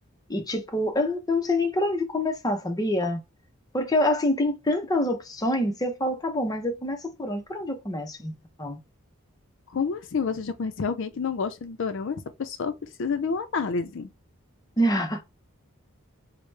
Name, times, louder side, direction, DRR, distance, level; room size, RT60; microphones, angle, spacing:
voice 1, 0.3-3.2 3.7-8.3 8.6-8.8 14.8-15.2, left 1 dB, 20° left, 0.6 m, -26 dB
voice 2, 9.7-14.1, left 5 dB, 60° left, 0.4 m, -29 dB
4.7 x 2.0 x 3.2 m
head